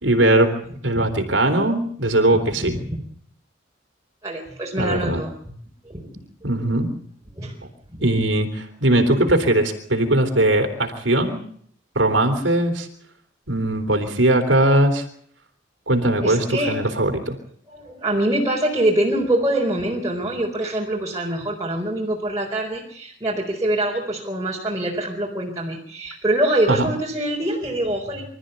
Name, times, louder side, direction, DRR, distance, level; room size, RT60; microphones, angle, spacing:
voice 1, 0.0-0.5 0.8-2.7 4.8-5.2 6.4-6.9 8.0-11.4 11.9-12.9 13.5-15.0 15.9-17.3 26.7-26.9, right 1 dB, 80° right, 5 dB, 3.4 m, -19 dB
voice 2, 2.3-3.0 4.2-5.3 5.8-6.1 6.4-6.5 7.4-7.5 16.2-16.8 17.7-28.3, right 1 dB, 20° right, -3 dB, 4.4 m, -24 dB
25.5 x 14.0 x 8.2 m, 0.62 s
head